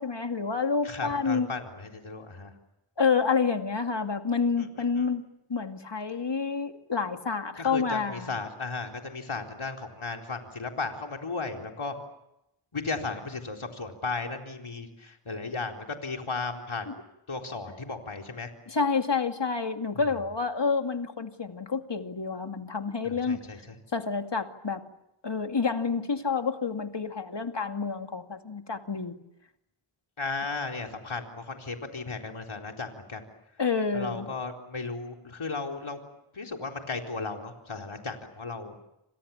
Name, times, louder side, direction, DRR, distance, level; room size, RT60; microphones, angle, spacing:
voice 1, 0.0-1.5 3.0-5.2 5.5-8.3 16.9-17.0 18.7-23.4 23.9-24.8 25.2-29.2 33.6-34.3, left 5 dB, 60° left, 6 dB, 2.5 m, -28 dB
voice 2, 0.8-2.5 4.6-4.7 5.0-5.1 7.6-11.9 12.7-17.0 17.3-18.5 23.0-23.8 30.2-33.3 33.9-36.0 36.3-38.7, left 3 dB, 75° left, 2 dB, 4.1 m, -35 dB
29.0 x 27.0 x 7.2 m, 0.86 s
cardioid pair, 40°, 49 cm